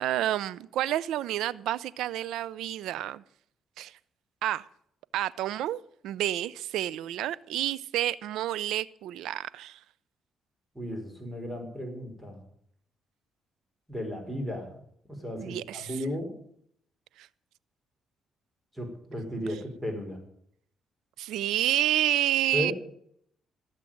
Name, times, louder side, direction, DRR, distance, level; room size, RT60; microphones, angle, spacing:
voice 1, 0.0-3.2 3.8-4.0 4.4-4.7 5.1-9.8 15.4-16.0 17.2-17.3 19.5-19.6 21.2-22.7, right 12 dB, 85° right, 0.5 m, -29 dB
voice 2, 10.7-12.4 13.9-14.7 15.2-16.3 18.7-20.2 22.5-22.7, equal, 10° right, 4.9 m, -34 dB
16.0 x 7.5 x 9.1 m
cardioid pair, 90°, 0 cm